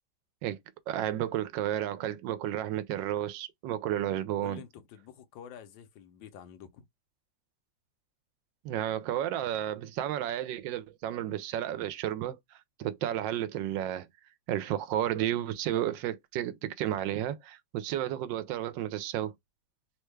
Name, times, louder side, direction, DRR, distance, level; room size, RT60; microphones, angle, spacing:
voice 1, 0.9-4.6 8.6-14.1 14.5-19.3, right 12 dB, 80° right, 1.3 m, -32 dB
voice 2, 4.4-6.9, left 9 dB, 90° left, 1.4 m, -48 dB
3.5 x 2.2 x 3.1 m
omnidirectional pair, 2.0 m